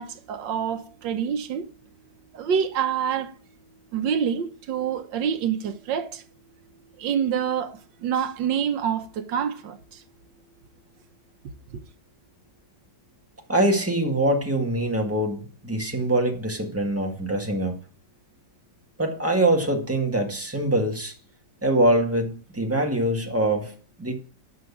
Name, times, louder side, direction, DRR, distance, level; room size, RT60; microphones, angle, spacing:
voice 1, 0.0-1.7 2.3-3.3 3.9-6.2 7.0-10.0 11.7-11.8, right 8 dB, 80° right, 1.6 m, -27 dB
voice 2, 13.5-17.8 19.0-21.1 21.6-23.7 24.0-24.2, right 1 dB, 10° right, 1.6 m, -23 dB
11.0 x 6.4 x 7.2 m
omnidirectional pair, 1.9 m